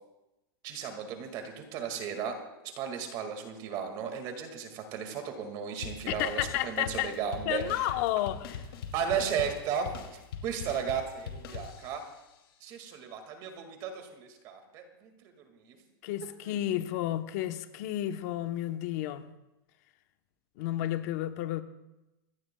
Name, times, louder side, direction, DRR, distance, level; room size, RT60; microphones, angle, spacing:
voice 1, 0.6-2.4 2.8-7.6 8.9-12.0 12.6-15.1 15.6-15.8 16.4-16.6, right 7 dB, 35° right, 5 dB, 2.0 m, -35 dB
sound 1, 5.8-12.2, left 6 dB, 85° left, 2.5 m, -42 dB
voice 2, 6.1-7.1 7.5-8.6 16.0-19.3 20.6-21.6, left 13 dB, 45° left, 9 dB, 0.9 m, -32 dB
25.5 x 17.5 x 2.3 m, 0.96 s
supercardioid pair, 165°, 12 cm